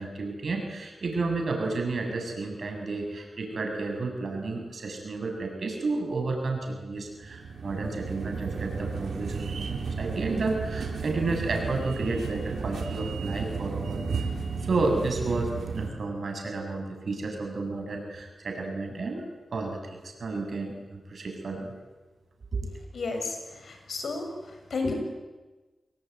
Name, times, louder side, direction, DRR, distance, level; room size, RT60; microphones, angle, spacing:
voice 1, 0.0-14.3 14.6-19.3 19.5-21.7 22.5-22.7, right 3 dB, 70° right, 3 dB, 7.5 m, -31 dB
sound 1, 7.1-15.9, right 5 dB, 90° right, 3.3 m, -33 dB
voice 2, 22.9-23.4 23.7-24.3 24.7-24.9, left 3 dB, 80° left, 4 dB, 6.8 m, -31 dB
29.0 x 21.5 x 9.4 m, 1.2 s
cardioid pair, 55°, 0 cm